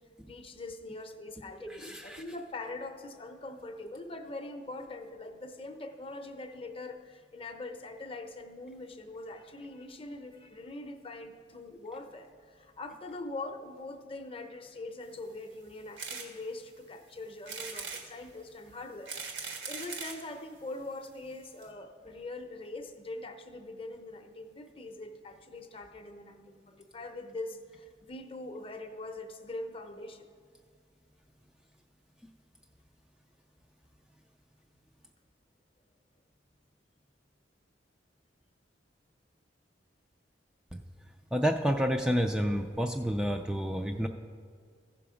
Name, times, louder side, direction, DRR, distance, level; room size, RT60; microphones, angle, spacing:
voice 1, 0.2-19.2 19.4-30.3, left 2 dB, 30° left, 6 dB, 0.7 m, -43 dB
voice 2, 1.6-2.2 40.7-40.8 41.3-44.1, equal, 5° right, 3 dB, 0.3 m, -29 dB
sound 1, 16.0-16.3 16.8-16.9 17.5-18.1 18.8-20.2 21.0-21.1 21.3-21.4 21.6-21.7, right 5 dB, 90° right, 1.5 m, -39 dB
14.5 x 5.9 x 4.9 m, 2.1 s
head